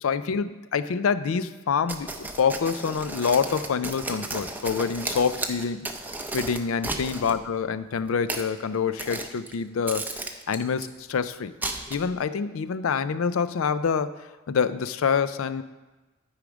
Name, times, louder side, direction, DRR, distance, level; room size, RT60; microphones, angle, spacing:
voice 1, 0.0-5.9 6.3-10.0 10.5-11.5 11.9-14.2 14.5-15.6, left 6 dB, 75° left, 14 dB, 0.4 m, -26 dB
sound 1, 1.9-7.4 8.1-8.5 9.0-9.5 9.9-10.9 11.6-12.2, right 2 dB, 10° right, 0.6 m, -34 dB
11.5 x 4.9 x 5.0 m, 1.2 s
head